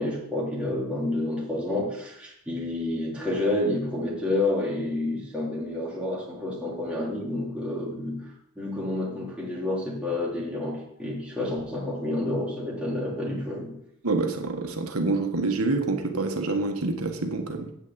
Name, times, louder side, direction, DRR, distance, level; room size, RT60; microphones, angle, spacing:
voice 1, 0.0-8.2 8.6-13.8, left 1 dB, 5° right, -6 dB, 3.5 m, -29 dB
voice 2, 14.0-17.7, right 3 dB, 75° right, 5 dB, 1.5 m, -27 dB
8.4 x 6.4 x 8.0 m, 0.77 s
head